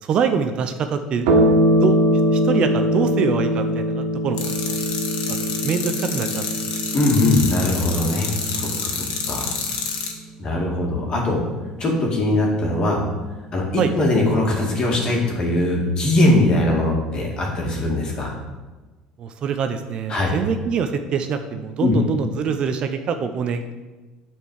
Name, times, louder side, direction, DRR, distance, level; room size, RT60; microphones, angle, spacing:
voice 1, 0.0-1.3 1.8-2.0 2.3-4.8 5.3-6.8 13.8-13.9 19.2-23.7, right 6 dB, 45° right, 8 dB, 0.6 m, -25 dB
sound 1, 1.3-10.1, equal, 90° right, 1.7 m, -22 dB
sound 2, 4.4-10.1, left 6 dB, 65° left, 1.6 m, -28 dB
voice 2, 6.9-9.5 10.4-11.4 11.8-13.0 13.5-18.3 20.1-20.3 21.8-21.9, left 2 dB, 35° left, -1 dB, 2.2 m, -21 dB
8.8 x 4.5 x 6.4 m, 1.2 s
cardioid pair, 125°, 2 cm